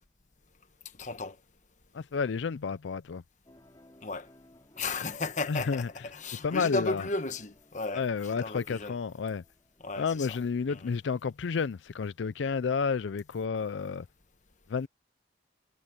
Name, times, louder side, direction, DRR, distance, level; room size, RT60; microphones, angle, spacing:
voice 1, 1.0-1.4 4.0-4.3 4.8-8.9 9.8-10.4 10.7-10.9, left 3 dB, 45° left, 1.3 m, -35 dB
voice 2, 1.9-3.2 5.5-5.9 6.4-7.1 7.9-9.4 10.0-14.1 14.7-14.9, left 5 dB, 85° left, 0.5 m, -31 dB
sound 1, 3.5-10.9, left 1 dB, 20° left, 2.9 m, -61 dB
head